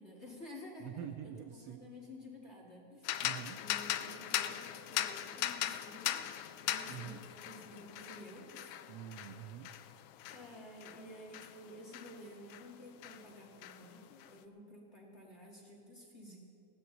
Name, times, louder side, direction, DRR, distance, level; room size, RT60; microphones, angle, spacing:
voice 1, 0.0-3.1 3.5-6.2 6.6-8.7 10.3-16.4, left 1 dB, 25° left, -3 dB, 1.9 m, -52 dB
voice 2, 0.8-1.8 3.2-3.6 6.9-7.2 8.9-9.7, right 10 dB, 80° right, 8 dB, 1.5 m, -46 dB
sound 1, 3.0-12.7 13.0-14.3, left 13 dB, 90° left, 2.0 m, -40 dB
20.0 x 16.0 x 3.9 m, 2.6 s
omnidirectional pair, 3.4 m